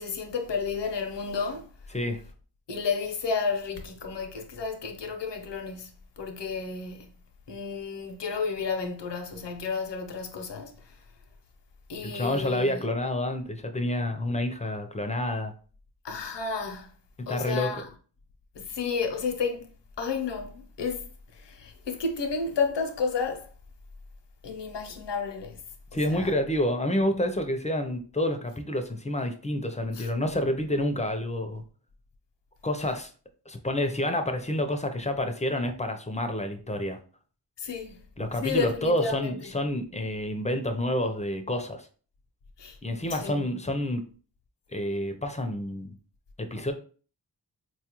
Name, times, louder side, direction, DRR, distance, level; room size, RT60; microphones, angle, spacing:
voice 1, 0.0-1.7 2.7-7.1 7.5-10.9 11.9-12.8 16.0-16.9 17.3-17.9 18.5-19.7 20.0-21.1 21.3-23.5 24.4-25.6 26.1-26.3 29.9-30.1 37.6-38.0 38.4-39.5 42.6-42.8 43.1-43.5, left 5 dB, 80° left, 0.7 m, -32 dB
voice 2, 1.9-2.2 12.0-15.5 17.3-17.7 25.9-31.6 32.6-33.1 33.5-37.0 38.2-41.8 42.8-44.0 44.7-45.9 46.4-46.7, left 1 dB, 15° left, 0.4 m, -28 dB
4.3 x 2.3 x 2.9 m
wide cardioid pair, 90°, 42 cm